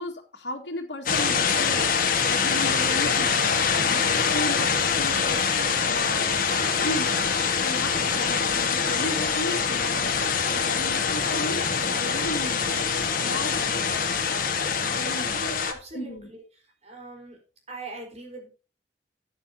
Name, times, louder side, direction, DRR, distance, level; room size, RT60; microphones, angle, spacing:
voice 1, 0.0-1.9 2.2-6.4 6.8-7.1 7.6-10.2 10.5-12.8 13.1-14.2 14.8-15.4 15.9-16.3, left 1 dB, 85° left, -2 dB, 1.9 m, -35 dB
sound 1, 1.1-15.7, left 6 dB, 50° left, 1.6 m, -24 dB
voice 2, 15.1-16.4 16.8-17.4 17.7-18.5, right 3 dB, 40° right, 1 dB, 4.5 m, -40 dB
13.5 x 9.1 x 2.8 m, 0.33 s
head